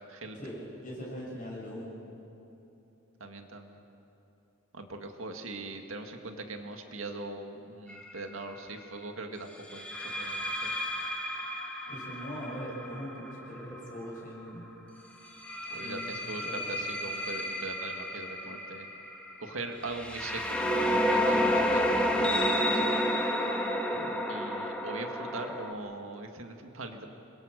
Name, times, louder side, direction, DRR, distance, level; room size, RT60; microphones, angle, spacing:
voice 1, 0.3-1.9 11.9-14.7 15.7-16.7 23.9-24.1, equal, 40° left, -4 dB, 7.0 m, -41 dB
voice 2, 3.2-3.8 4.7-10.7 15.7-18.9 19.4-23.0 24.3-27.1, right 2 dB, 80° right, 5 dB, 1.9 m, -41 dB
sound 1, 7.9-8.2 9.7-14.4 15.2-25.7, equal, 5° left, 1.7 m, -31 dB
27.0 x 22.5 x 6.6 m, 3.0 s
head